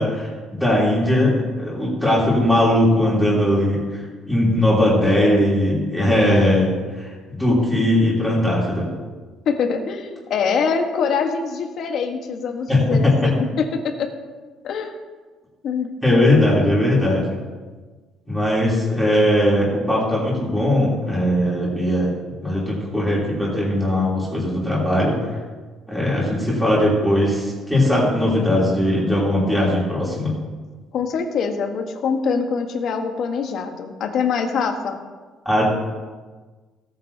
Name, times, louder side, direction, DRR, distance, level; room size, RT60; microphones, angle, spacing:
voice 1, 0.0-8.9 12.7-13.1 16.0-17.4 18.3-22.1 22.4-25.2 25.9-30.3 35.4-35.7, left 1 dB, ahead, -7 dB, 3.2 m, -19 dB
voice 2, 9.4-14.1 14.6-15.0 15.6-15.9 30.9-35.0, left 5 dB, 50° left, 4 dB, 1.3 m, -24 dB
17.5 x 9.2 x 2.8 m, 1.4 s
cardioid pair, 160°, 0 cm